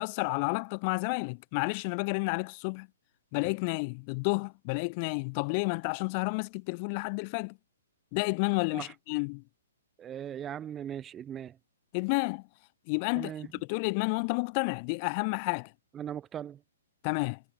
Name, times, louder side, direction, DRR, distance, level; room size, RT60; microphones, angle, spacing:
voice 1, 0.0-2.9 3.3-7.6 8.1-9.4 11.9-12.4 12.9-13.3 13.7-15.7 17.0-17.4, left 32 dB, 35° left, 1.5 m, -30 dB
voice 2, 10.0-11.6 13.2-13.5 15.9-16.6, right 9 dB, 20° right, 0.9 m, -39 dB
hypercardioid pair, 130°, 0 cm